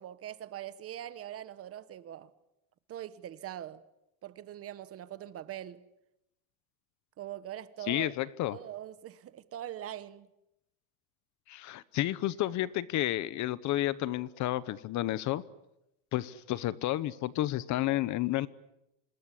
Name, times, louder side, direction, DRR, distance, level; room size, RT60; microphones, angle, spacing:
voice 1, 0.0-2.3 2.9-3.8 4.2-5.8 7.2-8.1 8.5-10.3, right 11 dB, 30° right, 1.1 m, -42 dB
voice 2, 7.9-8.6 11.5-15.4 16.1-18.5, left 15 dB, 40° left, 0.9 m, -31 dB
27.0 x 20.5 x 9.9 m
cardioid pair, 160°, 44 cm